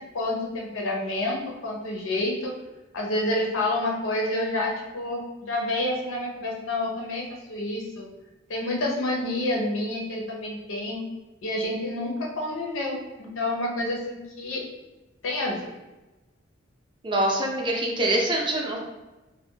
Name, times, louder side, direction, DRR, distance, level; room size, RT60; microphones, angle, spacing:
voice 1, 0.0-2.6 2.9-8.1 8.5-11.0 11.4-14.6 15.2-15.7, left 1 dB, 85° left, -1 dB, 0.6 m, -29 dB
voice 2, 17.0-18.8, right 1 dB, 25° right, 0 dB, 0.4 m, -24 dB
2.4 x 2.0 x 2.7 m, 1.1 s
head